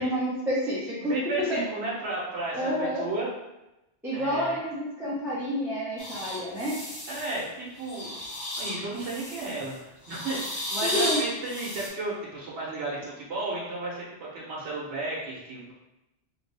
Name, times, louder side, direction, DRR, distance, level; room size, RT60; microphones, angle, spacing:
voice 1, 0.0-1.1 1.5-1.6 2.5-3.1 4.0-6.8 10.8-11.2, equal, ahead, -9 dB, 0.7 m, -29 dB
voice 2, 1.0-3.3 4.1-4.6 7.1-8.1 8.6-15.7, right 2 dB, 65° right, -5 dB, 1.1 m, -33 dB
sound 1, 6.0-7.4 7.8-9.7 10.0-11.9, left 1 dB, 80° left, 1.3 m, -34 dB
3.2 x 2.6 x 3.3 m, 0.94 s
omnidirectional pair, 1.2 m